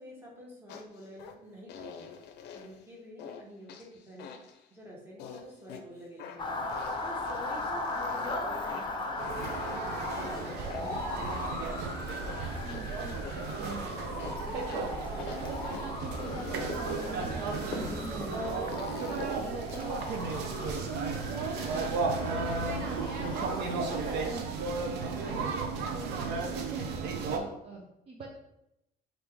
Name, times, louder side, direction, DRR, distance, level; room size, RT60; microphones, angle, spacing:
voice 1, 0.0-2.1 2.5-4.3 4.7-6.6 7.0-11.8 19.1-19.3 25.2-25.6, equal, 15° right, -4 dB, 1.4 m, -48 dB
sound 1, 0.7-1.3 1.7-2.8 3.2-3.4 3.7-4.7 5.2-5.8 6.2-8.4 8.7-10.4 10.7-13.3 13.7-13.8 14.2-15.8 16.2-17.2 17.7-18.2 18.7-19.8, left 7 dB, 80° left, 0.5 m, -47 dB
Motor vehicle (road) / Siren, 6.4-24.4, left 2 dB, 30° left, 0.6 m, -38 dB
sound 2, 9.2-27.4, right 4 dB, 80° right, 0.6 m, -34 dB
voice 2, 12.6-13.2 13.5-13.8 14.5-14.9 15.2-18.5 18.9-20.0 21.6-24.7 25.2-28.3, right 3 dB, 35° right, -1 dB, 0.6 m, -43 dB
3.4 x 2.6 x 4.5 m, 0.85 s
cardioid pair, 110°, 17 cm